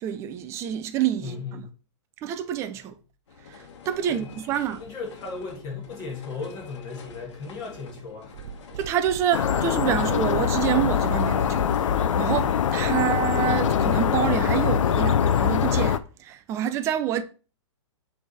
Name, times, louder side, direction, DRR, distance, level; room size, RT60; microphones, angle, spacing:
voice 1, 0.0-1.7 2.2-2.9 3.5-4.8 8.8-17.2, right 10 dB, 20° right, 0.4 m, -27 dB
voice 2, 1.2-1.6 4.1-4.3 4.8-8.3, left 4 dB, 25° left, 1.8 m, -36 dB
sound 1, 3.3-14.0, left 5 dB, 65° left, 1.4 m, -47 dB
sound 2, 8.3-15.0, right 9 dB, 60° right, 0.7 m, -41 dB
sound 3, 9.3-16.0, left 8 dB, 90° left, 0.5 m, -23 dB
7.0 x 3.4 x 4.0 m
hypercardioid pair, 155°, 16 cm